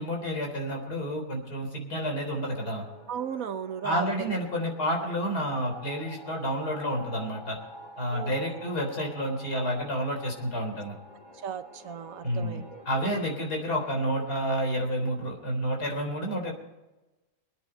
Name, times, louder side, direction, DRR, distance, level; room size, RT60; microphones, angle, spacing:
voice 1, 0.0-2.8 3.8-7.6 8.0-11.0 12.2-16.5, equal, 85° left, 1 dB, 4.5 m, -30 dB
sound 1, 2.2-14.4, equal, 30° left, 3.1 m, -49 dB
voice 2, 3.1-4.3 8.1-8.7 11.4-13.3, right 8 dB, 65° right, 10 dB, 1.2 m, -36 dB
23.5 x 9.8 x 4.5 m, 1.0 s
omnidirectional pair, 1.6 m